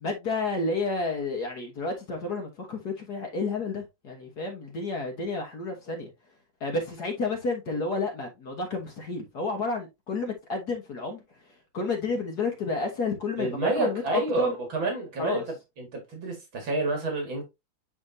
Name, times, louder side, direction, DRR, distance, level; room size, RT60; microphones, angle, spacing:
voice 1, 0.0-6.1 6.6-11.2 11.7-14.5 15.2-15.4, left 3 dB, 55° left, 1.8 m, -30 dB
voice 2, 13.4-15.4 15.8-17.4, right 2 dB, 75° right, 2.8 m, -29 dB
9.9 x 3.6 x 2.7 m
omnidirectional pair, 2.2 m